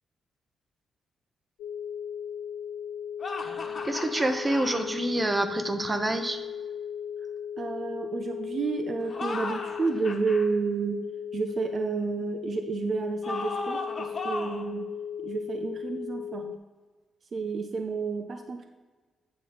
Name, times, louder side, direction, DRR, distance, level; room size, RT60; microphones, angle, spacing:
sound 1, 1.6-16.6, left 8 dB, 85° left, 0.3 m, -37 dB
sound 2, 3.2-4.9 9.0-10.5 13.2-14.7, left 3 dB, 45° left, 1.3 m, -35 dB
voice 1, 3.8-6.4, right 1 dB, 20° right, 8 dB, 0.9 m, -27 dB
voice 2, 7.6-11.1 11.3-14.9 15.2-16.6 17.3-18.7, right 5 dB, 50° right, 5 dB, 0.6 m, -31 dB
7.8 x 3.6 x 6.6 m, 1.3 s
supercardioid pair, 65°, 0 cm